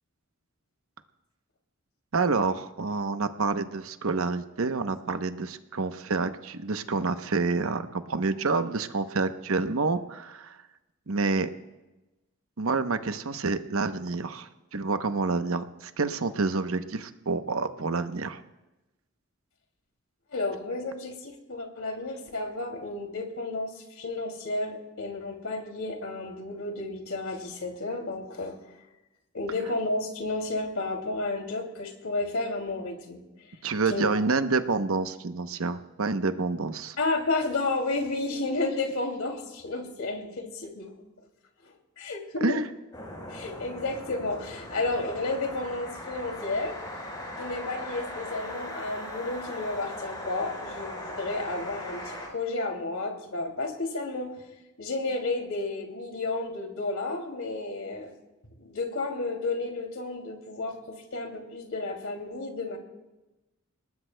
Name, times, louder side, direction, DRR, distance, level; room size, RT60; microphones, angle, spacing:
voice 1, 2.1-10.6 11.1-11.5 12.6-18.4 33.6-37.0 42.4-42.7, right 3 dB, 75° right, 9 dB, 0.8 m, -28 dB
voice 2, 20.3-28.6 29.3-33.2 33.9-34.1 37.0-40.9 41.6-42.6 43.3-46.8 47.4-54.3 54.8-58.1 58.6-62.8, left 2 dB, 80° left, 2 dB, 2.6 m, -32 dB
sound 1, 42.9-52.3, left 1 dB, 20° left, 4.3 m, -39 dB
29.5 x 19.5 x 2.2 m, 1.0 s
head